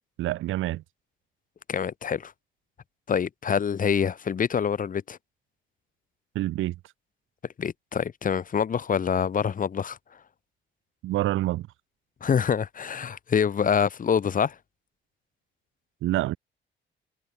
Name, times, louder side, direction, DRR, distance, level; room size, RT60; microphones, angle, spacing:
voice 1, 0.2-0.8 6.3-6.7 11.0-11.7 16.0-16.4, right 16 dB, 85° right, 0.9 m, -27 dB
voice 2, 1.7-2.3 3.1-5.2 7.6-10.0 12.2-14.5, left 7 dB, 45° left, 1.4 m, -26 dB
cardioid pair, 90°, 20 cm